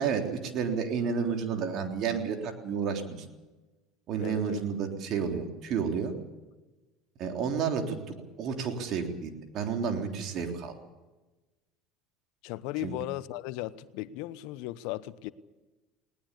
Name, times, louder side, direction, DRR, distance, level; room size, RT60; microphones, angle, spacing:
voice 1, 0.0-3.3 4.1-6.1 7.2-8.0 8.4-10.7 12.8-12.9, right 6 dB, 55° right, 3.5 m, -31 dB
voice 2, 4.2-4.6 12.4-15.3, left 16 dB, 70° left, 0.9 m, -36 dB
20.5 x 18.5 x 8.4 m
hypercardioid pair, 80°, 0 cm